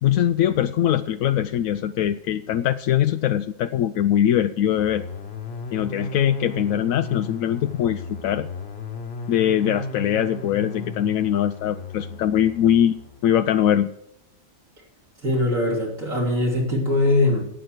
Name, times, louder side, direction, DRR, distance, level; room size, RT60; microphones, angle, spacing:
voice 1, 0.0-5.0 5.7-8.5 9.3-13.9, left 10 dB, 80° left, 9 dB, 1.0 m, -22 dB
sound 1, 4.8-13.3, left 3 dB, 50° left, 1.4 m, -35 dB
voice 2, 15.2-17.5, left 2 dB, 75° right, -1 dB, 3.8 m, -21 dB
11.5 x 9.3 x 6.6 m, 0.82 s
omnidirectional pair, 1.4 m